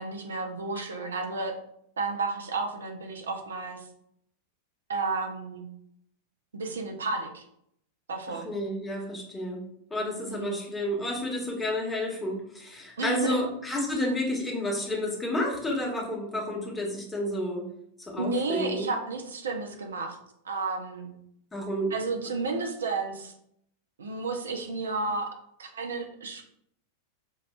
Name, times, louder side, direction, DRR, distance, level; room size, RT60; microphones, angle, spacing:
voice 1, 0.0-1.6 2.0-3.9 4.9-5.6 6.5-7.4 8.1-8.5 10.3-10.6 13.0-13.4 18.2-20.2 20.4-21.1 21.9-23.3 24.0-25.3 25.6-26.4, right 3 dB, 70° right, 4 dB, 0.4 m, -32 dB
voice 2, 8.3-17.7 18.0-18.9 21.5-21.9, left 1 dB, 10° left, -3 dB, 0.9 m, -31 dB
4.6 x 2.3 x 2.2 m, 0.71 s
figure-of-eight pair, 90°, 0 cm